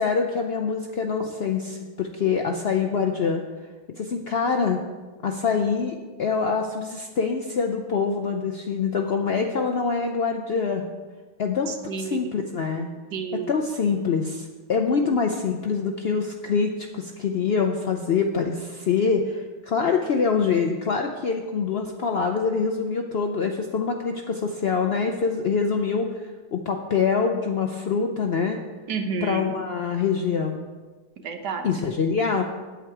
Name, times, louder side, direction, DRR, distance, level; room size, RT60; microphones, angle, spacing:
voice 1, 0.0-3.4 4.0-4.8 5.2-10.9 11.4-12.9 13.5-28.6 29.2-30.6 31.6-32.4, left 5 dB, 70° left, 4 dB, 0.6 m, -25 dB
voice 2, 11.7-12.4 13.1-13.5 15.0-15.2 28.9-29.5 31.2-31.7, right 5 dB, 90° right, 5 dB, 1.6 m, -30 dB
8.9 x 8.3 x 4.7 m, 1.3 s
omnidirectional pair, 1.7 m